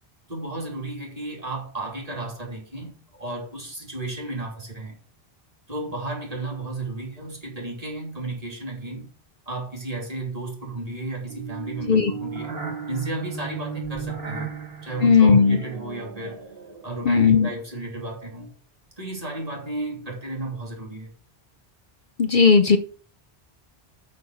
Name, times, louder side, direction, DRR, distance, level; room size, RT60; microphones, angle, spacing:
voice 1, 0.3-5.0 5.7-9.1 9.5-12.5 12.9-14.5 14.8-16.5 16.8-18.5 19.0-21.1, right 2 dB, 35° right, 2.9 m, -33 dB
sound 1, 11.3-17.7, right 6 dB, 70° right, 2.0 m, -35 dB
voice 2, 15.0-15.6 17.0-17.5 22.2-22.8, left 5 dB, 55° left, 0.8 m, -16 dB
6.4 x 6.2 x 6.9 m
omnidirectional pair, 1.1 m